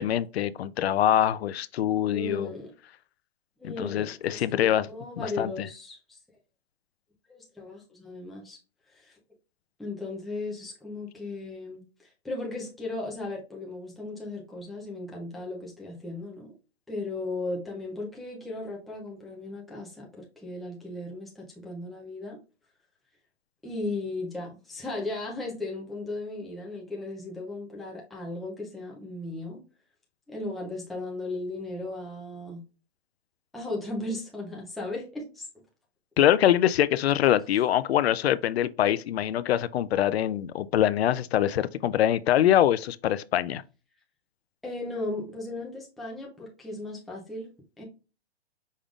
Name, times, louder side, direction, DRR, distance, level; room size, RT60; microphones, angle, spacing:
voice 1, 0.0-2.5 3.6-4.9 5.2-5.7 36.2-43.6, left 11 dB, 70° left, 0.5 m, -24 dB
voice 2, 2.1-2.7 3.6-6.2 7.3-8.6 8.9-9.1 9.8-16.5 16.9-22.4 23.6-29.6 30.3-32.6 33.5-35.5 44.6-47.5 47.8-47.9, left 2 dB, ahead, 0.4 m, -36 dB
5.3 x 3.5 x 2.3 m
hypercardioid pair, 155°, 33 cm